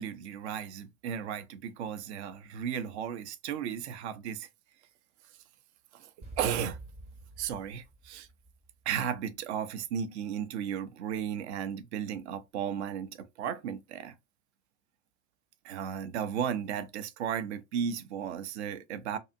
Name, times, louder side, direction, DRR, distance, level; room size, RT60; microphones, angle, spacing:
voice 1, 0.0-4.5 5.9-6.1 6.4-6.8 7.4-8.3 8.9-14.2 15.6-19.2, right 8 dB, 60° right, 0.5 m, -35 dB
sound 1, 6.2-9.2, right 2 dB, 25° right, 0.9 m, -47 dB
2.7 x 2.4 x 2.4 m
hypercardioid pair, 95°, 37 cm